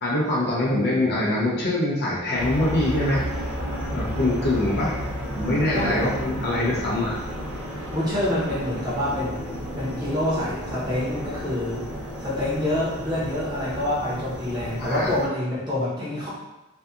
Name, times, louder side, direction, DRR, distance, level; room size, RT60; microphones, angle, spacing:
voice 1, 0.0-3.3 3.9-5.0 5.3-7.2 14.8-15.1, left 1 dB, 50° left, -5 dB, 0.5 m, -24 dB
sound 1, 2.3-15.3, equal, 85° right, 0.8 m, -32 dB
voice 2, 5.7-6.1 7.9-9.4 9.7-11.9 12.2-16.3, left 1 dB, 20° right, -9 dB, 0.9 m, -26 dB
2.7 x 2.3 x 2.3 m, 0.99 s
head